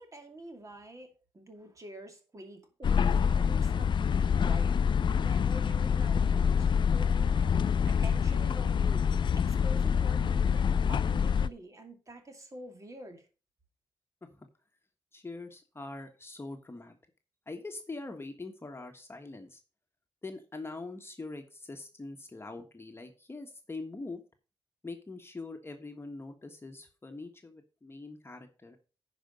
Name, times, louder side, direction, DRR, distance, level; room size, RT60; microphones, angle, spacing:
voice 1, 0.0-4.7 5.1-9.0 9.3-13.3, right 1 dB, 35° right, 4 dB, 2.5 m, -47 dB
sound 1, 2.8-11.5, left 7 dB, 55° left, 0.4 m, -26 dB
voice 2, 15.1-16.9 17.5-19.6 20.2-24.2 24.8-28.8, left 3 dB, 25° left, 5 dB, 1.4 m, -43 dB
10.5 x 5.2 x 5.2 m, 0.34 s
cardioid pair, 80°, 10 cm